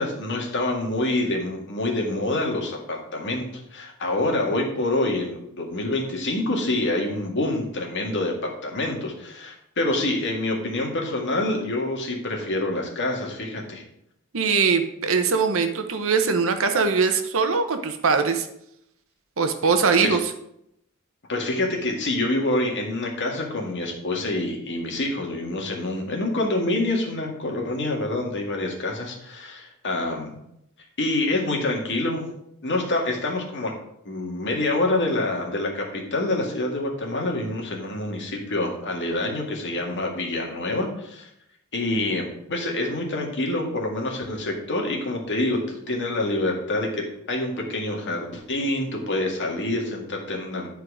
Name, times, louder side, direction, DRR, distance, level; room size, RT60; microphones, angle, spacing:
voice 1, 0.0-13.8 20.0-20.2 21.3-30.3 31.0-32.3 32.6-33.7 34.1-41.3 41.7-50.7, left 2 dB, 55° left, 0 dB, 2.0 m, -26 dB
voice 2, 14.3-18.5 19.4-20.2, right 5 dB, 65° right, 7 dB, 0.9 m, -21 dB
10.5 x 4.6 x 4.9 m, 0.78 s
head